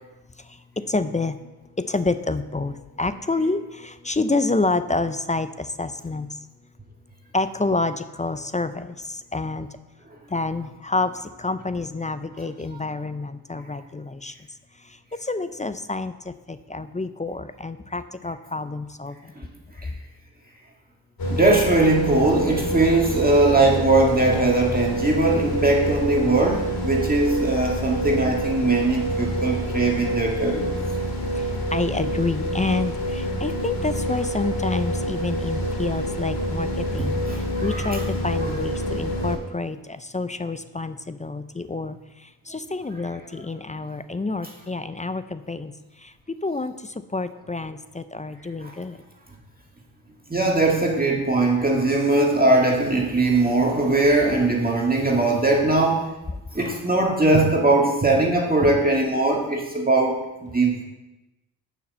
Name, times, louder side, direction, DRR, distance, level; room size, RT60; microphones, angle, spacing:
voice 1, 0.8-6.3 7.3-9.7 10.3-14.3 15.1-19.2 31.4-42.0 42.2-45.7 46.0-46.1 46.4-49.0, left 3 dB, 15° left, 12 dB, 0.5 m, -28 dB
sound 1, 21.2-39.4, equal, 50° left, 2.2 m, -27 dB
voice 2, 21.3-30.7 37.0-38.1 38.4-38.6 48.6-48.7 50.3-56.1 56.5-60.8, right 2 dB, 20° right, -2 dB, 1.9 m, -20 dB
7.1 x 5.9 x 7.4 m, 1.0 s
supercardioid pair, 50°, 46 cm